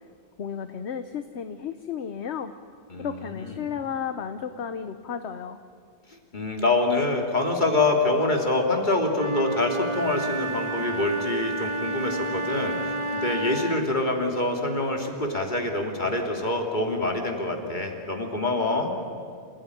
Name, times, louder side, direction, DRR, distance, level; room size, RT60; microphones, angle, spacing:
voice 1, 0.4-2.5 3.0-5.6, left 7 dB, 60° left, 9 dB, 1.1 m, -33 dB
voice 2, 6.3-18.9, left 2 dB, 40° left, 2 dB, 3.0 m, -25 dB
Wind instrument woodwind instrument, 9.1-14.0, right 2 dB, 25° right, 1.0 m, -30 dB
28.0 x 17.0 x 10.0 m, 2.2 s
omnidirectional pair, 1.3 m